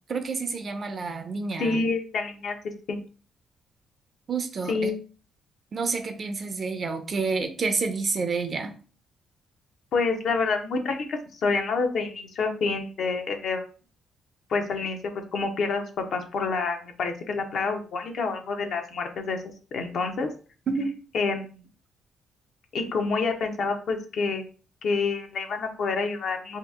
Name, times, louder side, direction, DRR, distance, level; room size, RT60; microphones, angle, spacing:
voice 1, 0.1-1.8 4.3-4.9 5.7-8.7 20.7-20.9, right 4 dB, 45° right, 7 dB, 0.6 m, -29 dB
voice 2, 1.6-3.0 4.7-4.9 9.9-13.6 14.5-20.3 21.1-21.6 22.7-24.4 24.8-26.6, left 4 dB, 65° left, 5 dB, 0.7 m, -28 dB
2.8 x 2.4 x 3.5 m, 0.38 s
cardioid pair, 90°, 0 cm